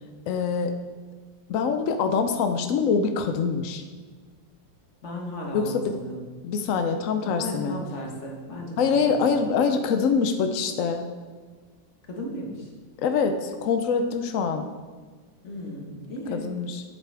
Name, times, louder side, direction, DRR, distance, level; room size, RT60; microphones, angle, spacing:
voice 1, 0.3-0.8 1.5-3.8 5.5-5.9 6.4-7.8 8.8-11.1 13.0-14.7 16.3-16.8, left 5 dB, 80° left, 7 dB, 0.7 m, -24 dB
voice 2, 5.0-6.2 7.2-9.2 12.1-12.7 15.4-16.5, left 1 dB, 40° left, -1 dB, 1.6 m, -35 dB
8.6 x 7.7 x 3.4 m, 1.5 s
omnidirectional pair, 2.0 m